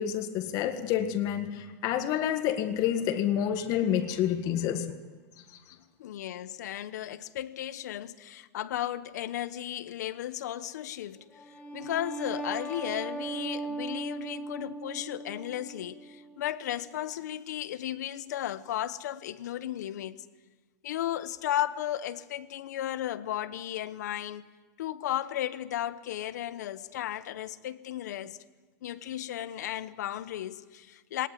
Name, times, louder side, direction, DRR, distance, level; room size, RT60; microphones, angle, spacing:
voice 1, 0.0-4.9, left 10 dB, 40° left, 1.8 m, -28 dB
voice 2, 6.0-11.2 11.7-20.2 20.8-24.5 24.8-28.4 28.8-31.3, left 12 dB, 80° left, 1.1 m, -35 dB
sound 1, 11.4-16.6, right 3 dB, 15° left, 3.8 m, -38 dB
21.0 x 18.5 x 9.9 m
supercardioid pair, 145°, 9 cm